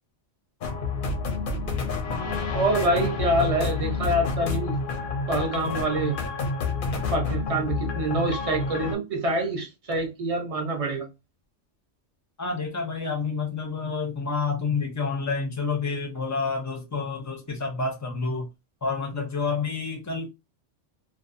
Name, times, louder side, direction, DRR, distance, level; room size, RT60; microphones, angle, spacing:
sound 1, 0.6-8.9, left 4 dB, 55° left, 0.7 m, -29 dB
voice 1, 2.5-4.8 5.3-6.1 6.9-11.1, right 1 dB, 35° right, 0.6 m, -26 dB
voice 2, 12.4-18.5 18.8-20.3, left 4 dB, 25° left, 0.4 m, -29 dB
2.6 x 2.3 x 2.5 m
omnidirectional pair, 1.3 m